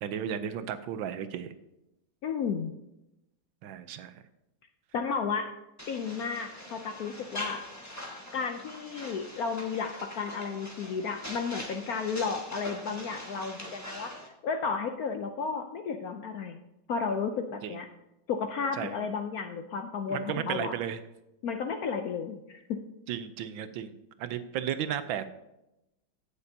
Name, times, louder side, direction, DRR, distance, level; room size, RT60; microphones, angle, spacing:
voice 1, 0.0-1.5 3.6-4.1 17.6-17.8 18.8-19.1 20.1-21.0 23.1-25.3, right 9 dB, 80° right, 11 dB, 1.4 m, -34 dB
voice 2, 2.2-2.7 4.9-5.5 5.9-7.6 8.3-14.1 14.4-16.6 16.9-17.9 18.3-20.8 21.4-22.8, left 5 dB, 70° left, 6 dB, 0.9 m, -33 dB
sound 1, 5.8-14.3, left 1 dB, 10° left, 1.3 m, -43 dB
16.5 x 6.7 x 2.8 m, 0.91 s
omnidirectional pair, 2.1 m